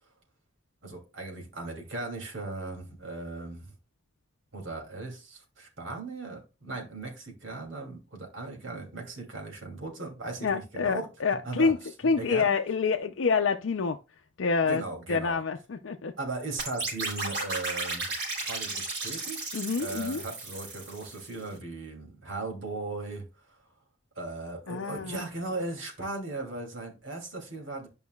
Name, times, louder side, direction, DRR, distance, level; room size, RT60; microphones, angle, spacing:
voice 1, 0.8-3.7 4.5-11.1 11.4-11.7 12.2-12.5 14.6-15.4 16.2-18.1 18.4-19.5 19.8-23.6 24.2-27.9, right 3 dB, 80° right, 2.7 m, -38 dB
voice 2, 10.4-11.8 12.0-14.0 14.4-14.8 15.1-16.1 19.5-20.2 24.7-25.2, left 5 dB, 80° left, 0.5 m, -27 dB
sound 1, 16.6-21.4, right 3 dB, 55° right, 4.4 m, -34 dB
11.5 x 5.3 x 2.3 m
head